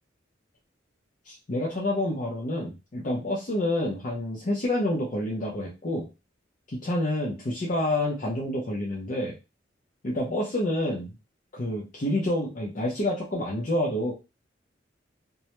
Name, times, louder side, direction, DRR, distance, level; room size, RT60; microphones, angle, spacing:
voice 1, 1.2-6.1 6.7-9.3 10.0-11.1 11.5-14.1, left 1 dB, 45° left, -4 dB, 0.6 m, -28 dB
2.2 x 2.1 x 2.9 m, 0.27 s
head